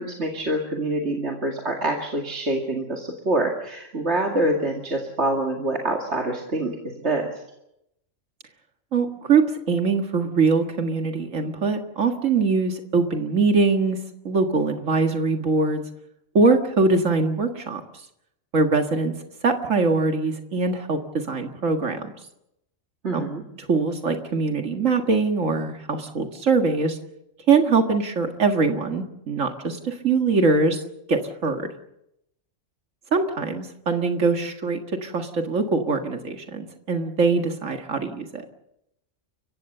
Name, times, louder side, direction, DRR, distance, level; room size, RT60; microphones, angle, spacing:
voice 1, 0.0-6.8 7.0-7.3 23.0-23.4, right 1 dB, 60° right, 1 dB, 2.6 m, -25 dB
voice 2, 8.9-14.0 14.3-15.8 16.3-17.8 18.5-19.1 19.4-22.1 23.1-23.2 23.7-27.0 27.5-30.8 31.1-31.7 33.1-38.4, right 4 dB, 90° right, 5 dB, 2.1 m, -22 dB
30.0 x 16.0 x 6.7 m, 0.82 s
omnidirectional pair, 1.3 m